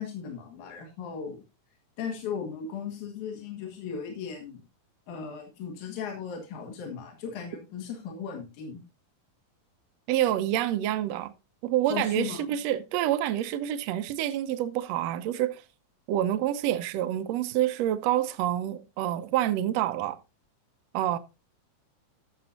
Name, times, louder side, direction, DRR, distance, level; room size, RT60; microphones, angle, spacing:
voice 1, 0.0-1.4 2.0-4.6 5.1-8.8 11.9-12.5, left 6 dB, 75° left, 3.3 m, -37 dB
voice 2, 10.1-11.3 11.6-15.6 16.1-20.2 20.9-21.2, right 12 dB, 70° right, 1.8 m, -27 dB
15.0 x 6.6 x 2.8 m
omnidirectional pair, 3.6 m